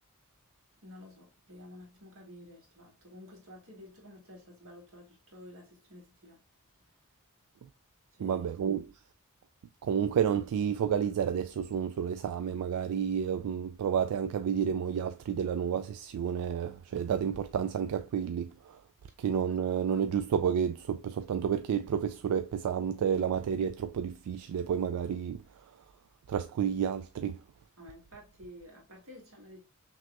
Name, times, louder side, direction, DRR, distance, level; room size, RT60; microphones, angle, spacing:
voice 1, 0.8-6.4 8.1-8.5 19.5-19.6 27.8-29.6, left 1 dB, 65° right, 1.8 m, -51 dB
voice 2, 8.2-8.8 9.8-18.8 19.2-25.4 26.3-27.4, right 8 dB, 90° right, 0.3 m, -30 dB
6.0 x 2.8 x 2.2 m
head